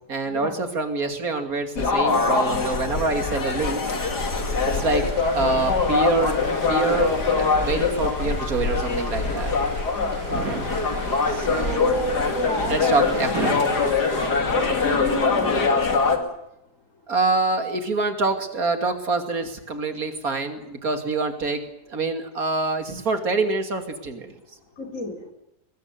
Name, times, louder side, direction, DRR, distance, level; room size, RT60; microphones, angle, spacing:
voice 1, 0.1-3.9 4.7-6.4 6.7-9.5 10.3-10.7 11.3-12.0 12.7-13.8 17.1-24.4, right 3 dB, 60° right, 7 dB, 3.1 m, -26 dB
sound 1, 1.8-16.2, left 4 dB, 75° left, 3.1 m, -23 dB
sound 2, 3.8-14.3, right 1 dB, 35° right, 8.1 m, -40 dB
voice 2, 9.9-10.5 11.8-13.2 14.1-16.2 24.8-25.2, left 1 dB, 50° left, 3 dB, 4.6 m, -31 dB
21.5 x 21.0 x 9.5 m, 0.86 s
omnidirectional pair, 1.8 m